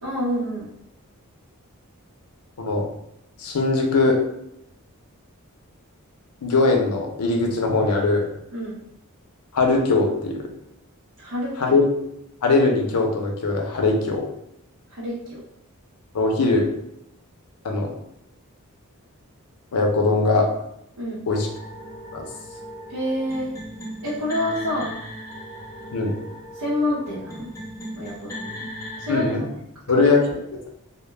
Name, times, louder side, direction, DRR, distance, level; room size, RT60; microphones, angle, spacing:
voice 1, 0.0-0.7 8.5-8.8 11.2-11.8 14.9-15.4 21.0-21.2 22.9-23.5 24.0-24.9 26.5-27.5 28.0-28.6 29.0-29.6 29.9-30.1, left 1 dB, 85° right, -8 dB, 0.7 m, -27 dB
voice 2, 3.4-4.2 6.4-8.3 9.5-10.5 11.6-11.8 12.4-14.3 16.1-16.7 17.6-17.9 19.7-20.5 21.3-21.5 22.1-22.2 25.9-26.2 29.1-29.4 29.9-30.2, left 3 dB, 90° left, 2 dB, 0.5 m, -20 dB
sound 1, 21.3-29.3, equal, 15° left, 0.4 m, -38 dB
2.1 x 2.1 x 3.1 m, 0.79 s
head